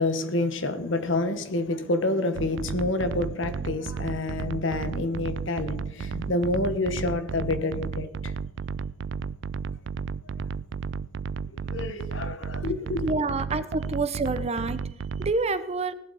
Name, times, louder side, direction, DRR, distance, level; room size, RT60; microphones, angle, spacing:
voice 1, 0.0-8.3 10.4-10.5 11.5-13.1, left 2 dB, 70° left, 1.3 m, -28 dB
sound 1, 2.4-15.3, right 5 dB, 65° right, 0.4 m, -33 dB
voice 2, 13.0-14.9 15.2-15.9, right 3 dB, 35° right, 0.8 m, -27 dB
17.0 x 11.5 x 4.2 m
head